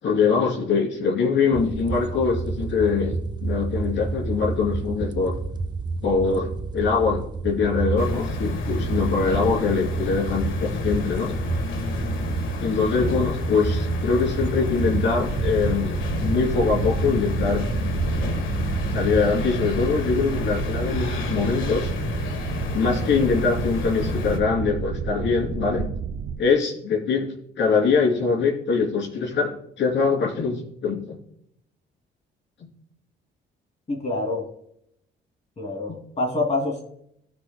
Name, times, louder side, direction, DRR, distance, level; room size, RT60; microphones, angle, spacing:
voice 1, 0.0-5.3 6.0-11.3 12.6-17.6 18.9-21.9 22.7-25.9 26.4-31.2 35.9-36.0, left 5 dB, 65° left, -2 dB, 3.4 m, -23 dB
sound 1, 1.5-19.3, right 4 dB, 20° right, 0.7 m, -29 dB
sound 2, 8.0-24.4, left 4 dB, 80° left, 1.6 m, -30 dB
sound 3, 15.1-26.4, right 7 dB, 55° right, 0.7 m, -30 dB
voice 2, 33.9-34.4 35.6-36.8, left 2 dB, 35° left, -1 dB, 2.7 m, -26 dB
17.5 x 6.2 x 2.3 m, 0.73 s
cardioid pair, 90°, 20 cm